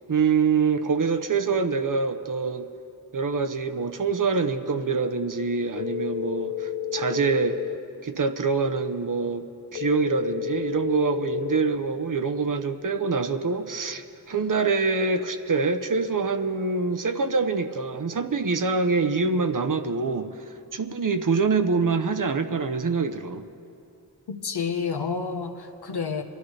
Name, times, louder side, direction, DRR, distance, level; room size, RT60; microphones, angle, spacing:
voice 1, 0.1-2.7 3.1-7.6 8.0-9.4 9.7-20.3 20.7-23.4, right 4 dB, 55° right, 8 dB, 0.8 m, -25 dB
sound 1, 5.8-7.8 9.8-11.8, left 11 dB, 60° left, 0.5 m, -31 dB
voice 2, 24.3-26.2, left 5 dB, 75° left, 5 dB, 1.0 m, -29 dB
23.0 x 12.0 x 3.3 m, 2.7 s
cardioid pair, 50°, 39 cm